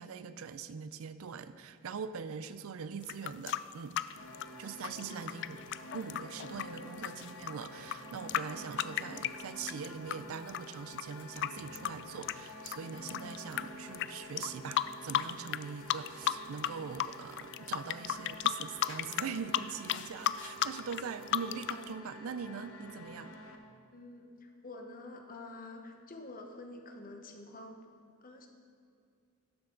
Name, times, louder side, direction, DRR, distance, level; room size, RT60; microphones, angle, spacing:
voice 1, 0.0-4.0 4.6-5.6 5.9-23.3, right 6 dB, 75° right, 13 dB, 0.4 m, -42 dB
sound 1, 3.0-10.2 10.5-13.6 13.9-14.1 14.4-15.6 15.9-16.7 16.9-21.8, left 12 dB, 60° left, 0.3 m, -34 dB
sound 2, 4.2-23.6, left 1 dB, 80° left, 0.9 m, -49 dB
voice 2, 23.9-27.9 28.2-28.5, left 2 dB, 40° left, 4 dB, 1.0 m, -48 dB
12.0 x 7.8 x 3.9 m, 2.4 s
head